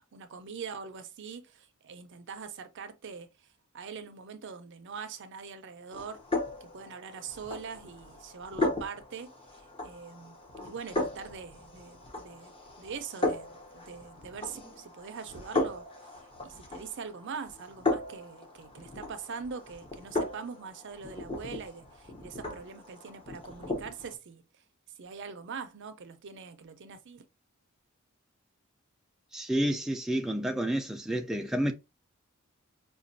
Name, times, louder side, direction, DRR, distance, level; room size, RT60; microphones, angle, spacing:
voice 1, 0.1-3.3 3.7-6.2 6.6-10.4 10.6-16.1 16.4-24.4 25.0-27.3, right 5 dB, 55° right, 0.5 m, -43 dB
sound 1, 5.9-24.1, left 2 dB, 25° left, 0.7 m, -36 dB
voice 2, 29.3-31.7, right 1 dB, ahead, 0.3 m, -29 dB
5.1 x 2.3 x 2.6 m
head